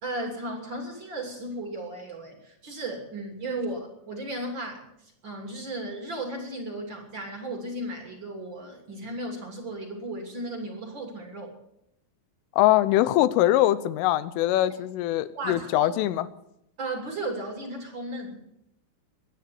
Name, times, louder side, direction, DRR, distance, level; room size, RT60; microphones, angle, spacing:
voice 1, 0.0-11.5 14.7-14.8 15.3-15.9 16.8-18.4, right 1 dB, 30° right, 3 dB, 2.7 m, -35 dB
voice 2, 12.5-16.3, left 14 dB, 85° left, 16 dB, 3.3 m, -22 dB
22.0 x 9.4 x 7.0 m, 0.79 s
omnidirectional pair, 5.6 m